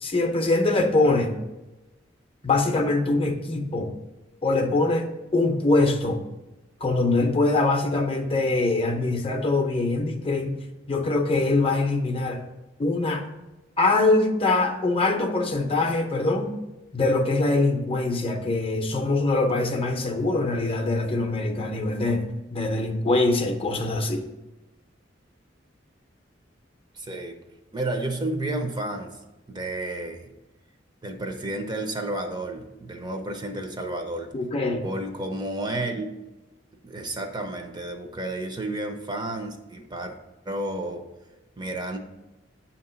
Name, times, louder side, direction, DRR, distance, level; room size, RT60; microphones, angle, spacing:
voice 1, 0.0-1.4 2.4-3.9 4.4-6.2 6.8-10.6 10.9-12.4 12.8-13.2 13.8-16.5 16.9-24.3 34.3-34.8, left 2 dB, 30° left, 0.6 m, -23 dB
voice 2, 26.9-27.4 27.7-29.2 29.5-30.3 31.0-34.3 34.8-36.1 36.8-40.1 40.5-41.0 41.6-42.0, right 1 dB, 25° right, 0.6 m, -31 dB
7.9 x 2.9 x 5.5 m
head